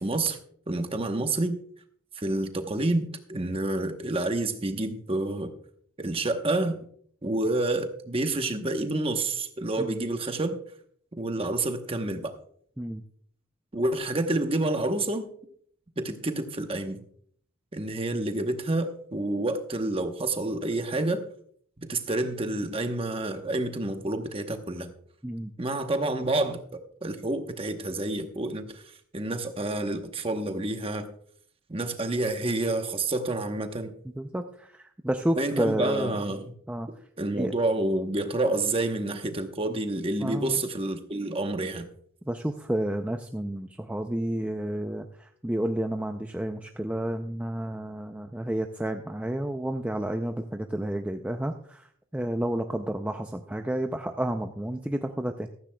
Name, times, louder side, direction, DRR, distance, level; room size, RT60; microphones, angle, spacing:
voice 1, 0.0-0.4 0.7-1.6 2.2-5.5 6.0-6.8 7.2-10.6 11.2-12.3 13.7-15.3 16.0-17.0 17.7-21.2 21.8-24.9 25.6-26.6 27.0-31.1 31.7-33.9 35.4-36.5 37.2-41.9, right 2 dB, 25° right, 7 dB, 0.9 m, -28 dB
voice 2, 34.2-36.1 36.7-36.9 37.4-37.5 40.2-40.6 42.3-51.9 52.1-55.5, right 1 dB, 5° right, 5 dB, 0.4 m, -30 dB
15.0 x 14.0 x 2.2 m, 0.62 s
head